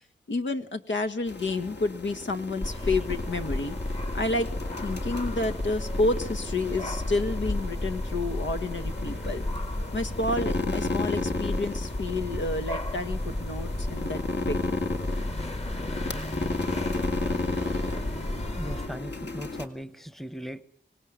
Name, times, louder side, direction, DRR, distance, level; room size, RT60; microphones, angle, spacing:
voice 1, 0.3-3.8 4.1-4.5 4.8-9.4 9.9-14.8, left 2 dB, 85° left, 8 dB, 1.7 m, -30 dB
sound 1, 1.3-19.7, left 3 dB, 65° left, 2.5 m, -34 dB
sound 2, 2.6-18.9, left 1 dB, 35° left, 1.8 m, -33 dB
voice 2, 18.5-20.6, equal, ahead, 16 dB, 1.0 m, -38 dB
25.5 x 18.5 x 9.5 m, 0.65 s
wide cardioid pair, 115°, 19 cm